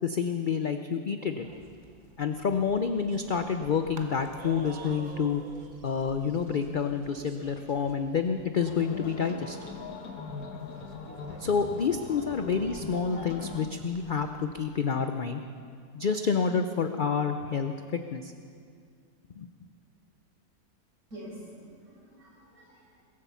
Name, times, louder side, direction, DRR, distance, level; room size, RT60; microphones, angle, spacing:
voice 1, 0.0-1.5 2.2-5.4 5.8-9.6 11.4-15.4 15.9-18.3 19.4-19.5, left 6 dB, 60° left, 7 dB, 0.5 m, -28 dB
sound 1, 1.4-14.7, right 3 dB, 35° right, 1.2 m, -50 dB
sound 2, 8.6-13.7, left 4 dB, 85° left, 1.7 m, -41 dB
voice 2, 21.1-23.0, equal, 65° right, -5 dB, 6.0 m, -47 dB
22.0 x 8.5 x 7.0 m, 2.2 s
omnidirectional pair, 1.6 m